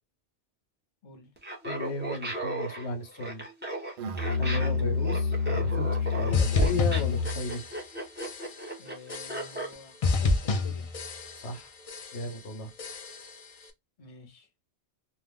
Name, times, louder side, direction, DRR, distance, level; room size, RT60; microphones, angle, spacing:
Laughter, 1.4-9.7, right 2 dB, 10° right, 0.7 m, -36 dB
voice 1, 1.6-3.4 4.3-7.6 11.4-11.7 12.1-12.7 13.6-13.7, left 1 dB, 85° left, 1.2 m, -35 dB
Musical instrument, 4.0-7.5, left 5 dB, 60° right, 0.6 m, -28 dB
sound 1, 6.3-7.9 8.2-8.7 9.1-9.7 10.0-11.6 11.9-12.4 12.8-13.4, left 3 dB, 55° left, 0.4 m, -30 dB
voice 2, 8.8-10.9 14.0-14.5, left 3 dB, 35° left, 0.8 m, -49 dB
2.5 x 2.4 x 3.4 m
omnidirectional pair, 1.2 m